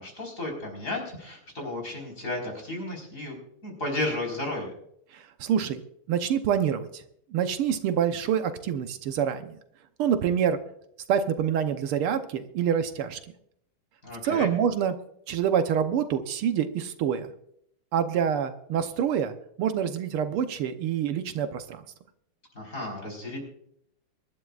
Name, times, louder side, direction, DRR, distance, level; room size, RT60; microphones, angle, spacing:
voice 1, 0.0-3.3 3.6-4.7 14.0-14.5 22.5-23.4, left 2 dB, 35° left, 0 dB, 4.9 m, -33 dB
voice 2, 5.1-5.8 6.1-6.9 7.3-9.6 10.0-10.6 11.1-13.2 14.2-14.9 15.3-17.3 17.9-21.8, right 8 dB, 80° right, 8 dB, 1.8 m, -26 dB
24.5 x 12.0 x 2.4 m, 0.71 s
omnidirectional pair, 2.4 m